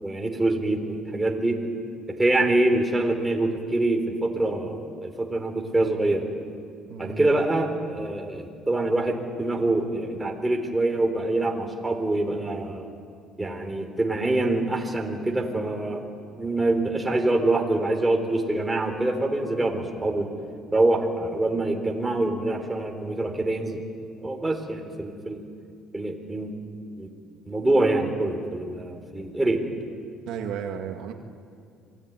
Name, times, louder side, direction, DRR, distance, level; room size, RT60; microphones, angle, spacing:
voice 1, 0.0-1.6 2.2-6.2 7.0-12.9 13.4-16.0 16.4-20.3 20.7-23.8 24.2-25.4 25.9-26.5 27.0-27.1 27.5-29.6, right 2 dB, 10° right, 2 dB, 3.8 m, -25 dB
voice 2, 6.9-7.3 30.3-31.1, right 7 dB, 70° right, 3 dB, 2.3 m, -33 dB
27.0 x 20.0 x 9.4 m, 2.3 s
cardioid pair, 115°, 0 cm